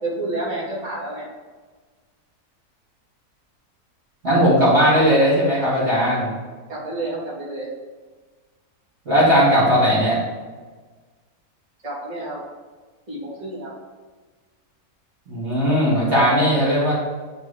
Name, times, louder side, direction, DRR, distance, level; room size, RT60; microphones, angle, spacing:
voice 1, 0.0-1.3 6.7-7.7 11.8-12.4 13.1-13.7, right 2 dB, 30° right, -8 dB, 1.8 m, -29 dB
voice 2, 4.2-6.3 9.1-10.2 15.3-16.9, equal, 45° right, -8 dB, 2.0 m, -17 dB
8.8 x 3.4 x 3.2 m, 1.4 s
omnidirectional pair, 1.6 m